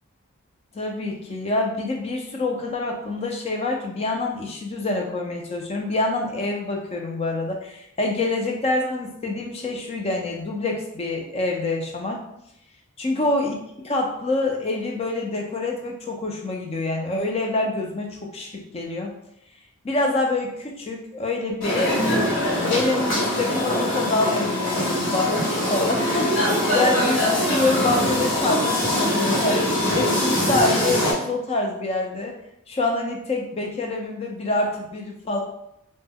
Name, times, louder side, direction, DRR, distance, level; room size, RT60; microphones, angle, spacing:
voice 1, 0.7-12.2 13.0-19.1 19.8-22.1 22.7-32.3 32.7-35.4, left 2 dB, 25° left, 1 dB, 0.3 m, -26 dB
sound 1, 21.6-31.1, left 1 dB, 60° left, 0.9 m, -22 dB
2.1 x 2.0 x 3.4 m, 0.78 s
head